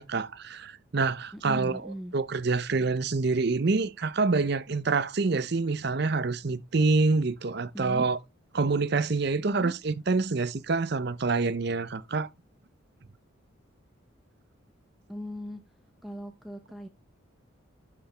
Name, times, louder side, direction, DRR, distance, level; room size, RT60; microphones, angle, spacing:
voice 1, 0.0-8.2 8.5-12.3, right 3 dB, 50° right, 0.6 m, -27 dB
voice 2, 1.3-2.1 7.7-8.1 9.4-9.7 15.1-15.6 16.0-16.9, equal, ahead, 0.7 m, -39 dB
11.5 x 5.2 x 3.3 m
head